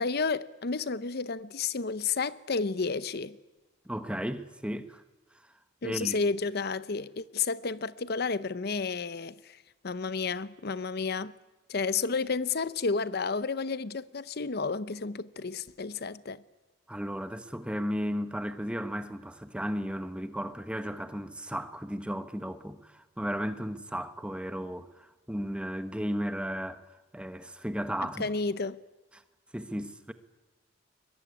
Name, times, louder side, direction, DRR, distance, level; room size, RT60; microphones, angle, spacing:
voice 1, 0.0-3.4 5.8-9.6 9.8-11.3 11.7-16.4 28.2-28.8, left 4 dB, 55° left, 0.7 m, -31 dB
voice 2, 3.8-5.0 5.8-6.2 16.9-26.9 27.1-28.3 29.1-29.2 29.5-30.1, equal, 5° right, 1.1 m, -34 dB
22.0 x 22.0 x 9.7 m
head